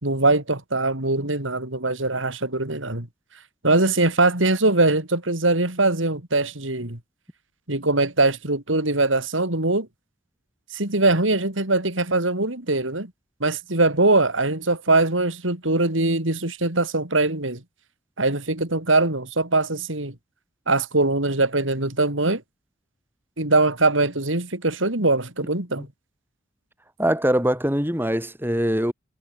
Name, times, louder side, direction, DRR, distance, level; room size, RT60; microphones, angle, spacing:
voice 1, 0.0-3.1 3.6-7.0 7.7-9.9 10.7-13.1 13.4-17.6 18.2-20.1 20.7-22.4 23.4-25.9, right 2 dB, 85° right, 4.2 m, -22 dB
voice 2, 27.0-28.9, equal, 10° right, 6.8 m, -22 dB
head